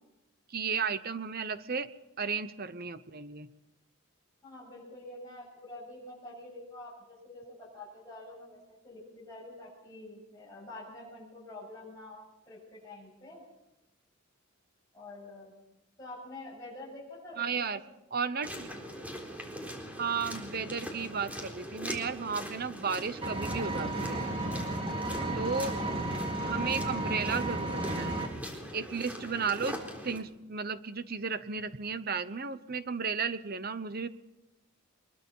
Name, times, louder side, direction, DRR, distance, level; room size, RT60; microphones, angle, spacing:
voice 1, 0.5-1.9 2.2-3.5 17.4-17.8 18.1-18.7 20.0-24.2 25.3-25.8 26.3-28.1 28.7-34.1, right 5 dB, 45° right, 13 dB, 0.9 m, -34 dB
voice 2, 4.4-13.4 14.9-15.5 16.0-17.8 25.6-25.9, left 2 dB, 15° left, -7 dB, 7.4 m, -47 dB
sound 1, 18.4-30.2, equal, 5° right, 3.9 m, -42 dB
Engine, 23.2-28.3, right 2 dB, 25° right, 3.7 m, -33 dB
24.5 x 22.0 x 5.6 m, 0.94 s
head